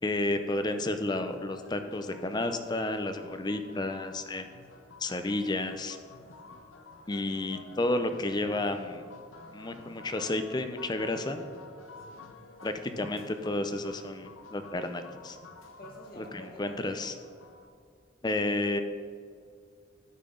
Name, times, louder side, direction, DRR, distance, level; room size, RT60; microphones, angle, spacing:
voice 1, 0.0-4.5 5.0-6.0 7.1-9.0 9.5-11.5 12.6-15.4 16.2-17.1 18.2-18.8, left 2 dB, 20° left, 8 dB, 0.5 m, -31 dB
sound 1, 1.3-17.7, left 3 dB, 80° left, 0.9 m, -51 dB
voice 2, 11.9-12.3 15.8-16.8, equal, 45° left, -2 dB, 1.5 m, -50 dB
12.0 x 5.8 x 3.7 m, 2.2 s
head